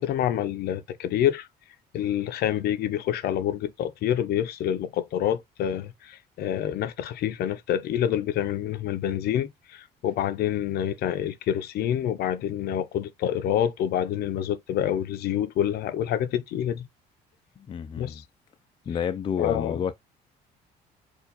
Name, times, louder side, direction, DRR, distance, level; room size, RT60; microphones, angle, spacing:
voice 1, 0.0-1.5 1.9-16.9 18.0-18.2 19.4-19.8, left 10 dB, 70° left, 0.6 m, -27 dB
voice 2, 17.7-18.2 18.9-20.0, left 8 dB, 30° left, 0.4 m, -29 dB
4.4 x 2.5 x 4.0 m
cardioid pair, 110°, 17 cm